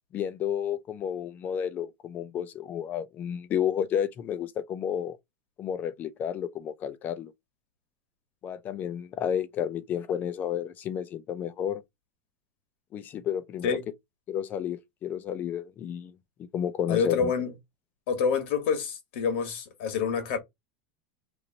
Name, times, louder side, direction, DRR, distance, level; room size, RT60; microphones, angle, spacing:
voice 1, 0.1-5.2 5.6-7.3 8.4-11.8 12.9-13.8 14.3-16.1 16.5-17.3, left 9 dB, 30° left, 0.4 m, -31 dB
voice 2, 16.9-17.5 18.1-20.4, left 6 dB, 70° left, 1.3 m, -27 dB
3.0 x 2.6 x 3.9 m
supercardioid pair, 155°, 7 cm